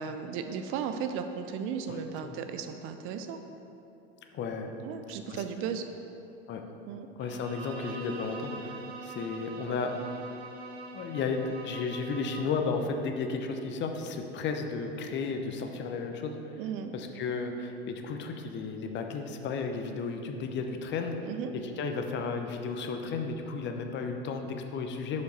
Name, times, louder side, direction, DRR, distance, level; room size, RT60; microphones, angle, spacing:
voice 1, 0.0-3.4 4.8-5.9 6.9-7.1 16.6-16.9 21.3-21.5, right 7 dB, 40° right, 8 dB, 0.6 m, -35 dB
voice 2, 4.3-4.7 5.3-5.4 6.5-6.6 7.2-10.0 10.9-16.6 16.9-21.2 21.5-25.2, left 4 dB, 35° left, 5 dB, 0.9 m, -33 dB
Bowed string instrument, 7.2-12.7, right 3 dB, 75° right, 1.0 m, -43 dB
11.5 x 5.3 x 4.1 m, 2.8 s
figure-of-eight pair, 80°, 32 cm